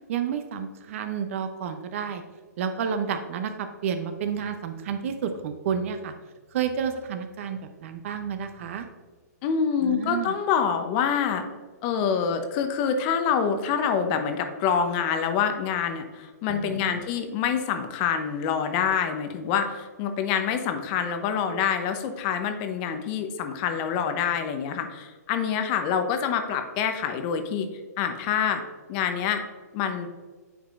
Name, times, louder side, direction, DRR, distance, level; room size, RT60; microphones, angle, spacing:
voice 1, 0.1-2.2 2.6-6.1 6.5-8.9 9.8-10.3 16.5-17.0, right 7 dB, 50° right, 8 dB, 0.6 m, -30 dB
voice 2, 9.4-11.4 11.8-27.7 28.0-28.6 28.9-29.4 29.7-30.1, left 7 dB, 35° left, 7 dB, 0.7 m, -26 dB
9.0 x 4.8 x 2.4 m, 1.4 s
hypercardioid pair, 135°, 9 cm